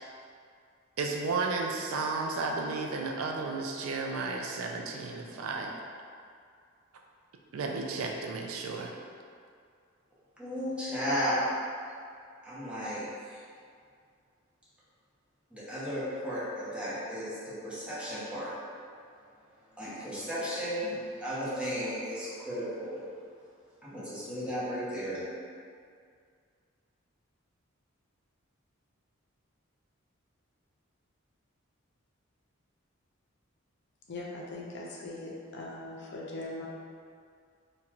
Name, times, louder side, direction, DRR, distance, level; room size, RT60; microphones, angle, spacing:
voice 1, 1.0-5.7 7.5-8.9, right 3 dB, 85° right, 1 dB, 0.4 m, -33 dB
voice 2, 10.4-11.4 12.4-13.4 15.5-18.7 19.8-23.0 23.8-25.2, equal, 5° right, -10 dB, 0.8 m, -34 dB
voice 3, 34.1-36.7, left 2 dB, 55° left, -3 dB, 0.5 m, -40 dB
3.8 x 2.2 x 2.9 m, 2.2 s
head